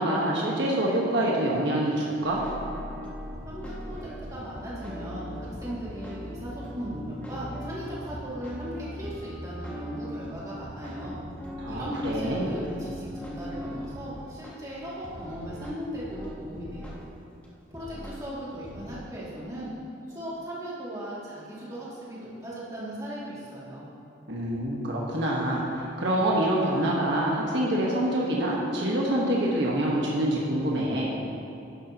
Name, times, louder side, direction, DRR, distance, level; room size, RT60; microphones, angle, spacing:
voice 1, 0.0-2.4 11.6-12.5 24.3-31.2, right 1 dB, 60° right, -4 dB, 1.3 m, -26 dB
sound 1, 2.2-14.5 15.0-17.0 17.4-17.5 17.7-18.2 18.6-19.0, equal, 5° left, 1.3 m, -39 dB
voice 2, 3.5-11.2 11.7-17.0 17.7-19.7 20.1-23.9, equal, 15° right, -8 dB, 2.4 m, -38 dB
11.0 x 11.0 x 2.9 m, 2.9 s
head